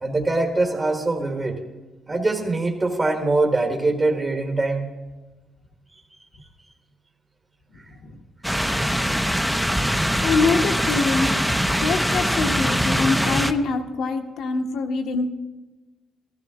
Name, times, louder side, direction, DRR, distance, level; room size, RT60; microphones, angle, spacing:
voice 1, 0.0-1.6 2.1-4.9, right 2 dB, 25° right, 2 dB, 1.4 m, -23 dB
sound 1, 8.4-13.5, equal, ahead, 0.6 m, -22 dB
voice 2, 10.2-11.3 11.8-15.3, left 4 dB, 75° left, 4 dB, 1.3 m, -24 dB
15.0 x 13.0 x 3.7 m, 1.2 s
cardioid pair, 90°, 0 cm